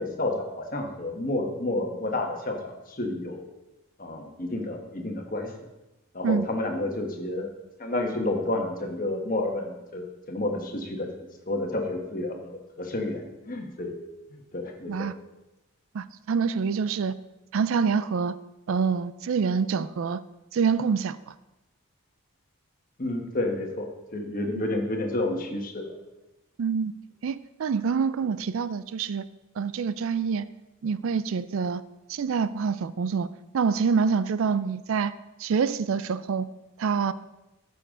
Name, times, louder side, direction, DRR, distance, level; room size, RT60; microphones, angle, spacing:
voice 1, 0.0-3.5 4.0-5.5 6.1-7.5 7.8-14.0 14.3-15.1 23.0-25.9, left 2 dB, 40° left, 2 dB, 1.3 m, -30 dB
voice 2, 15.9-17.2 17.5-18.4 18.7-20.2 20.5-21.3 26.6-26.9 27.2-29.2 29.6-30.4 30.8-31.8 32.1-33.3 33.5-35.1 35.4-36.5 36.8-37.1, right 5 dB, 65° right, 15 dB, 0.4 m, -26 dB
14.0 x 6.9 x 3.7 m, 1.0 s
head